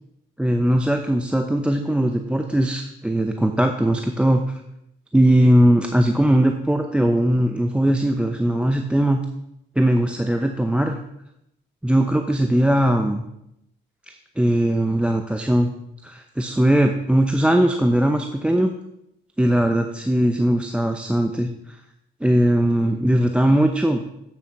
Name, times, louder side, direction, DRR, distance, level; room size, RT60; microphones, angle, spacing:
voice 1, 0.4-4.4 5.1-9.2 9.8-11.0 11.8-13.2 14.1-15.7 16.0-18.7 19.4-21.5 22.2-24.0, right 1 dB, 5° right, 5 dB, 0.7 m, -19 dB
8.1 x 7.5 x 5.4 m, 0.82 s
cardioid pair, 90°, 20 cm